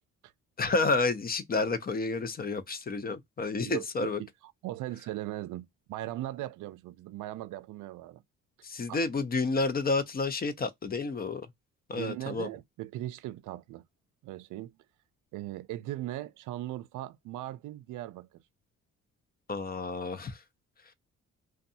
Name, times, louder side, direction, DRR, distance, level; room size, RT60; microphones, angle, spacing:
voice 1, 0.6-4.2 8.6-11.5 11.9-12.5 19.5-20.4, left 3 dB, 30° left, 0.5 m, -30 dB
voice 2, 3.6-4.1 4.4-8.2 8.9-9.0 11.9-13.8 14.2-14.7 15.3-18.3, right 15 dB, 80° right, 0.5 m, -38 dB
2.6 x 2.2 x 2.6 m
cardioid pair, 90°, 30 cm